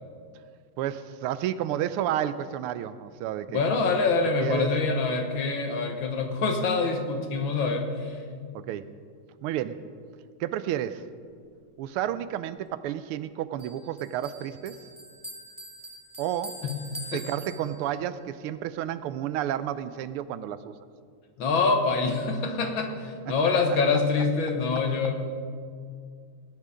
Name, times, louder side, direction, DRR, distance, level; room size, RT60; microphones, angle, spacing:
voice 1, 0.8-4.0 4.2-5.0 8.5-8.9 9.4-9.8 10.4-11.1 11.8-14.8 16.2-16.6 17.1-20.7 23.3-23.4, right 11 dB, 85° right, 14 dB, 1.5 m, -31 dB
voice 2, 3.5-8.2 17.1-17.2 21.4-25.2, left 4 dB, 65° left, 4 dB, 2.0 m, -25 dB
Bell, 13.6-18.1, right 1 dB, 5° right, 1.4 m, -44 dB
18.5 x 9.7 x 5.1 m, 2.1 s
omnidirectional pair, 2.4 m